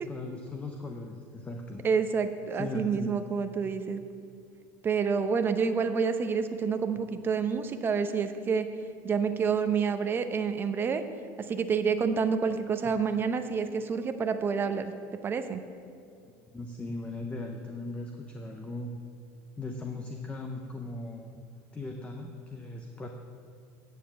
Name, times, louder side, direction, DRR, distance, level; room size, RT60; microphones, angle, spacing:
voice 1, 0.0-1.8 2.5-3.1 12.8-12.9 16.5-18.9 19.6-21.4 21.7-23.1, left 2 dB, 15° left, 3 dB, 0.7 m, -38 dB
voice 2, 1.8-4.0 4.8-8.7 9.0-11.0 11.5-14.9 15.2-15.6, right 6 dB, 25° right, 8 dB, 0.8 m, -28 dB
9.2 x 7.4 x 7.5 m, 2.3 s
supercardioid pair, 130°, 9 cm